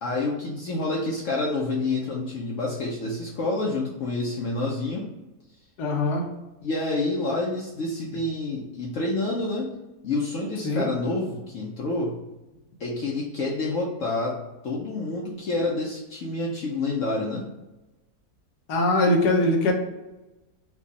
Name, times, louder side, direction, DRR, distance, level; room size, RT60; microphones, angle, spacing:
voice 1, 0.0-5.1 6.6-9.7 10.0-12.2 12.8-14.4 14.6-17.5, left 2 dB, 60° left, -2 dB, 0.9 m, -28 dB
voice 2, 5.8-6.2 10.6-10.9 18.7-19.7, left 2 dB, 85° left, 0 dB, 1.4 m, -22 dB
4.4 x 2.4 x 4.0 m, 1.0 s
omnidirectional pair, 1.7 m